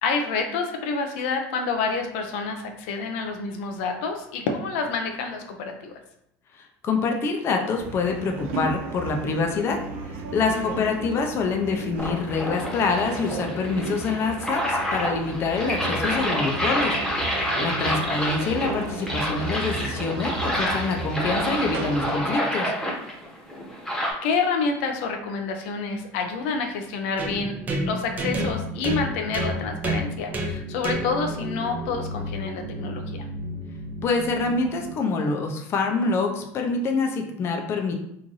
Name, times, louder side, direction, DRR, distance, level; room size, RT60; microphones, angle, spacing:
voice 1, 0.0-6.0 10.5-10.9 17.9-18.2 24.2-27.5 27.9-33.2, left 4 dB, 80° left, 4 dB, 0.5 m, -28 dB
voice 2, 6.6-9.8 10.3-16.9 17.3-22.7 34.0-37.9, left 4 dB, 40° left, 3 dB, 0.6 m, -26 dB
sound 1, 7.8-22.2, right 4 dB, 90° right, 0.5 m, -34 dB
sound 2, 12.0-24.1, equal, 5° left, 1.1 m, -28 dB
sound 3, 27.2-35.0, right 1 dB, 25° right, 0.6 m, -31 dB
3.1 x 2.6 x 3.8 m, 0.77 s
supercardioid pair, 125°, 6 cm